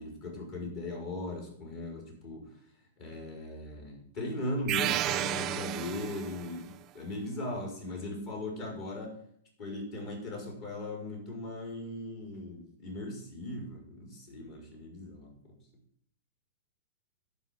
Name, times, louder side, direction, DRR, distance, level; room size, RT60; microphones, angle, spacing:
voice 1, 0.0-2.4 3.0-9.1 9.6-15.5, left 1 dB, 40° left, -1 dB, 4.7 m, -38 dB
sound 1, 4.7-6.6, right 14 dB, 30° right, 0.4 m, -32 dB
11.0 x 5.2 x 7.8 m, 0.65 s
figure-of-eight pair, 105°, 0 cm